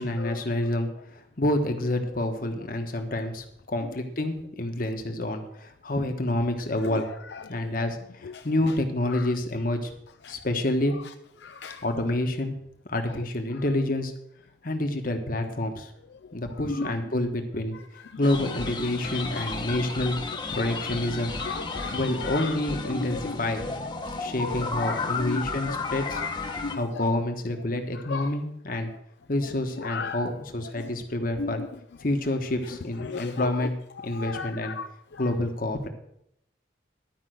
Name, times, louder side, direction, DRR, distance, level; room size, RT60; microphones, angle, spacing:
voice 1, 0.0-7.1 7.5-10.0 10.3-10.9 11.8-12.6 12.9-14.1 14.6-15.9 16.3-20.2 20.5-21.3 21.9-23.9 24.2-26.2 26.7-28.9 29.3-31.6 32.0-34.7 35.2-35.9, left 1 dB, 45° left, 1.3 m, -28 dB
voice 2, 7.3-7.6 8.2-8.5 9.1-9.3 10.2-10.4 11.4-11.8 15.4-15.5 16.7-17.0 18.0-18.2 19.3-19.5 21.4-22.6 22.9-23.4 24.3-25.4 25.7-25.8 26.1-26.4 26.6-27.1 27.9-28.3 29.8-30.3 30.8-30.9 31.4-31.7 33.0-33.7 34.0-34.9 35.1-35.3, left 4 dB, 65° left, 0.4 m, -35 dB
sound 1, 18.2-26.8, left 3 dB, 25° left, 1.0 m, -33 dB
12.0 x 5.5 x 7.8 m
head